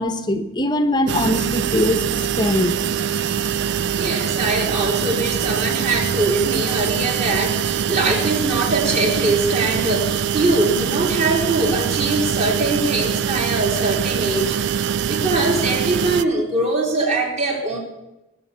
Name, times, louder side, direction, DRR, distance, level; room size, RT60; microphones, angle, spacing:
voice 1, 0.0-2.0 2.4-2.8, left 1 dB, 20° left, 9 dB, 0.9 m, -21 dB
sound 1, 1.1-16.2, right 8 dB, 55° right, 0.4 m, -23 dB
voice 2, 3.9-17.8, right 2 dB, 35° right, -1 dB, 3.6 m, -22 dB
20.0 x 7.1 x 7.0 m, 0.97 s
head